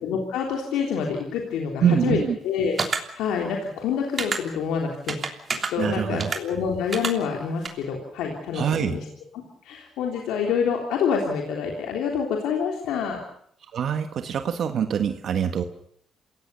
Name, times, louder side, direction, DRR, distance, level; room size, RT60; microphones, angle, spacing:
voice 1, 0.0-9.0 9.6-13.2, left 6 dB, 90° left, 1 dB, 3.4 m, -27 dB
voice 2, 1.8-2.4 5.8-6.3 8.5-9.0 13.7-15.6, right 8 dB, 60° right, 7 dB, 1.4 m, -24 dB
sound 1, 2.8-3.0 4.2-4.4 5.1-5.7 6.2-6.4 6.9-7.1 7.6-7.7, right 5 dB, 40° right, 3.2 m, -27 dB
27.5 x 17.0 x 6.9 m, 0.66 s
cardioid pair, 90°, 0 cm